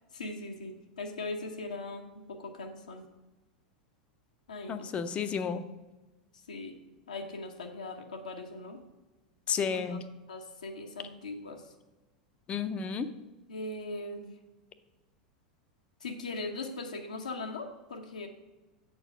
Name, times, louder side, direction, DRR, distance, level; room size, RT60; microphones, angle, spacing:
voice 1, 0.1-3.0 4.5-4.9 6.5-6.7 7.1-8.8 9.6-10.0 10.3-11.6 13.5-14.3 16.0-18.3, left 2 dB, 80° left, 3 dB, 0.9 m, -40 dB
voice 2, 4.7-5.7 9.5-10.0 12.5-13.1, left 6 dB, 30° left, 11 dB, 0.6 m, -32 dB
7.8 x 4.5 x 5.0 m, 1.1 s
figure-of-eight pair, 90°, 4 cm